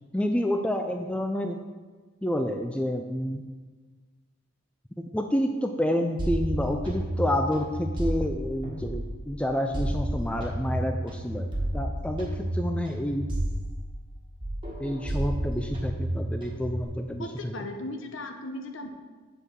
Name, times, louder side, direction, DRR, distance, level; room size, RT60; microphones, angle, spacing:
voice 1, 0.1-1.6 2.2-3.4 5.0-13.3 14.8-17.5, equal, 5° left, 4 dB, 0.3 m, -29 dB
sound 1, 6.2-9.3 9.7-14.1 14.4-16.8, right 1 dB, 25° right, 1.5 m, -31 dB
voice 2, 17.2-18.9, left 2 dB, 65° left, 5 dB, 0.9 m, -37 dB
7.5 x 4.7 x 6.5 m, 1.4 s
head